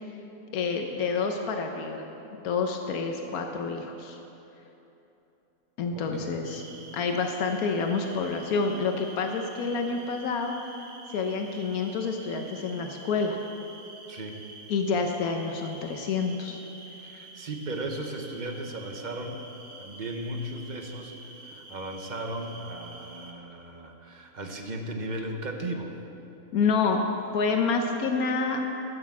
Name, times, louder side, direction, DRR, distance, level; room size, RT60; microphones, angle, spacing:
voice 1, 0.5-2.0 2.4-4.2 5.8-6.6 6.9-10.5 11.1-13.4 14.7-16.6 26.5-27.0 27.3-28.6, left 4 dB, 90° left, 4 dB, 1.3 m, -28 dB
voice 2, 5.9-6.5 14.1-14.4 17.0-19.4 19.8-26.0, right 1 dB, 35° right, 3 dB, 1.0 m, -36 dB
sound 1, 6.4-23.3, right 2 dB, 85° right, 1.7 m, -48 dB
14.0 x 6.6 x 7.3 m, 3.0 s
omnidirectional pair, 1.5 m